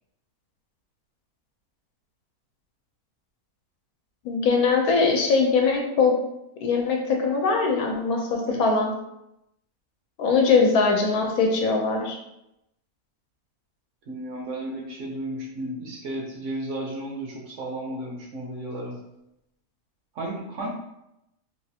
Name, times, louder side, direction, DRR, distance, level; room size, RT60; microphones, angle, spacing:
voice 1, 4.2-6.2 6.6-8.9 10.2-12.2, left 4 dB, 80° left, 1 dB, 1.1 m, -21 dB
voice 2, 14.1-19.0 20.1-20.7, right 1 dB, 60° right, -1 dB, 1.0 m, -33 dB
3.2 x 2.4 x 2.7 m, 0.85 s
omnidirectional pair, 1.5 m